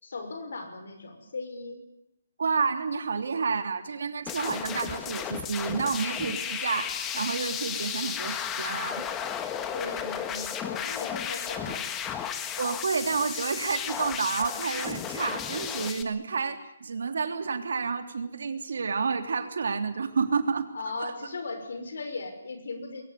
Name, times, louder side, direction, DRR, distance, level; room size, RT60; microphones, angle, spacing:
voice 1, 0.0-1.8 9.7-11.8 20.7-23.0, left 3 dB, 80° left, 8 dB, 5.9 m, -37 dB
voice 2, 2.4-9.0 12.6-20.7 21.0-21.1, right 5 dB, 80° right, 7 dB, 3.2 m, -30 dB
sound 1, 4.3-16.0, left 8 dB, 15° left, 1.5 m, -34 dB
22.0 x 18.5 x 9.9 m, 0.83 s
hypercardioid pair, 160°, 0 cm